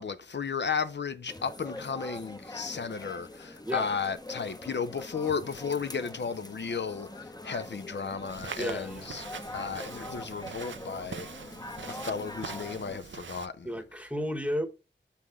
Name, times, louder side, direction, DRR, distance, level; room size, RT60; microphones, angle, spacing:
voice 1, 0.0-9.2 9.5-11.3 11.9-13.7, left 6 dB, 65° left, 0.5 m, -34 dB
sound 1, 1.3-13.0, left 1 dB, 20° left, 0.8 m, -43 dB
Walk footsteps, 8.3-13.5, right 6 dB, 90° right, 0.6 m, -43 dB
voice 2, 8.6-9.2 13.6-14.7, equal, 5° right, 1.0 m, -33 dB
6.4 x 5.7 x 3.5 m
wide cardioid pair, 60°, 19 cm